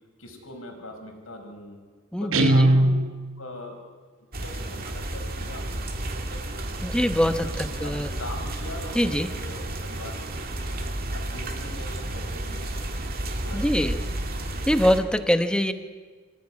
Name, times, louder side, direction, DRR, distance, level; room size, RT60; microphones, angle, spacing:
voice 1, 0.2-1.8 2.2-2.9 3.4-3.8 4.4-6.7 7.2-10.8 11.1-12.8 13.4-14.3, left 1 dB, 90° left, 3 dB, 4.8 m, -41 dB
voice 2, 2.1-2.7 6.8-8.1 8.9-9.3 13.5-14.0 14.7-15.7, equal, 5° left, 9 dB, 1.2 m, -23 dB
Guitar, 2.3-3.6, right 1 dB, 80° right, 1.1 m, -20 dB
sound 1, 4.3-15.0, right 1 dB, 45° right, 2.2 m, -32 dB
26.0 x 15.5 x 9.7 m, 1.5 s
head